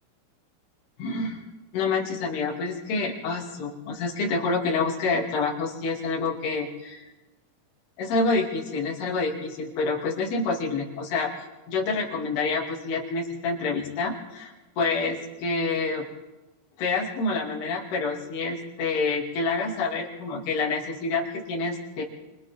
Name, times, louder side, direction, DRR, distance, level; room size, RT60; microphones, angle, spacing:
voice 1, 1.0-1.4 1.7-7.1 8.0-11.3 11.7-16.1 16.8-22.0, left 3 dB, 60° left, -2 dB, 4.5 m, -27 dB
29.5 x 25.0 x 3.6 m, 1.2 s
omnidirectional pair, 5.5 m